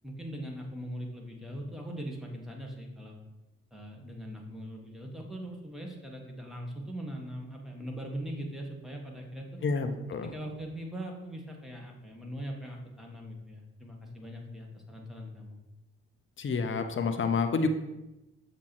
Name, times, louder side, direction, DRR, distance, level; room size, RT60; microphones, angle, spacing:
voice 1, 0.0-3.2 3.7-9.6 10.2-15.6, equal, ahead, 0 dB, 1.5 m, -41 dB
voice 2, 9.6-10.3 16.4-17.7, left 5 dB, 40° left, 7 dB, 0.7 m, -29 dB
6.9 x 2.9 x 4.7 m, 0.99 s
hypercardioid pair, 45°, 32 cm